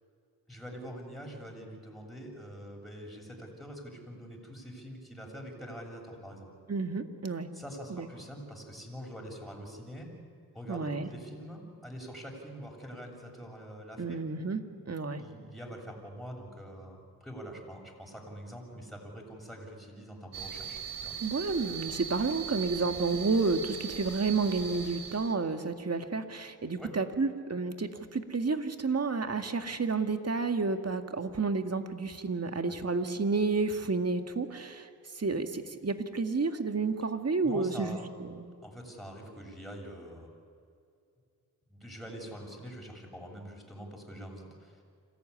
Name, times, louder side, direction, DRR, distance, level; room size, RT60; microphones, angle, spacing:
voice 1, 0.5-6.5 7.5-10.1 10.5-14.2 15.2-21.2 26.8-26.9 32.7-32.8 37.4-38.0 38.6-40.3 41.7-44.8, equal, ahead, 0 dB, 7.5 m, -45 dB
voice 2, 6.7-7.5 7.9-8.1 10.7-11.1 14.0-15.2 21.2-34.9 35.2-38.4, right 4 dB, 40° right, 7 dB, 2.1 m, -31 dB
sound 1, 20.3-25.3, right 7 dB, 60° right, 3.7 m, -40 dB
26.5 x 15.0 x 10.0 m, 2.4 s
cardioid pair, 50°, 39 cm